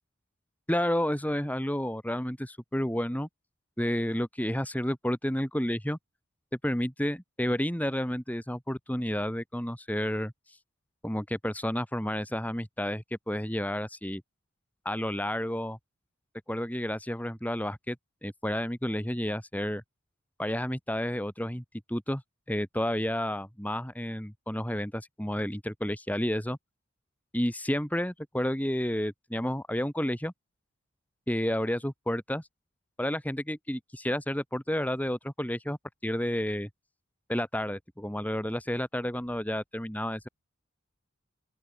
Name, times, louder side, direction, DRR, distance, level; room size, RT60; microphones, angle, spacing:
voice 1, 0.7-3.3 3.8-6.0 6.6-10.3 11.0-14.2 14.9-15.8 16.5-18.0 18.2-19.8 20.4-22.2 22.5-26.6 27.3-30.3 31.3-32.4 33.0-36.7 37.3-40.3, equal, 10° left, 3.4 m, -31 dB
open air
head